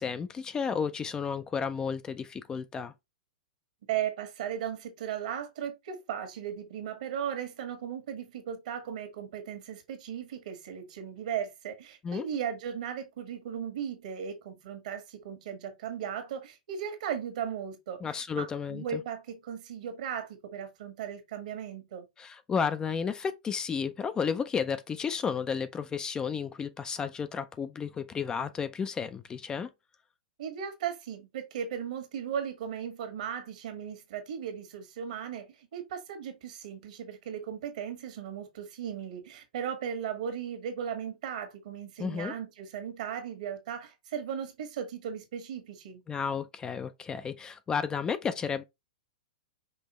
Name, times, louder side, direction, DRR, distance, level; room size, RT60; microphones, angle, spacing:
voice 1, 0.0-2.9 12.0-12.2 18.0-19.0 22.2-29.7 42.0-42.3 46.1-48.6, left 6 dB, 15° left, 0.4 m, -32 dB
voice 2, 3.9-22.1 30.4-46.0, right 8 dB, 65° right, 1.5 m, -37 dB
5.5 x 2.9 x 3.0 m
hypercardioid pair, 125°, 4 cm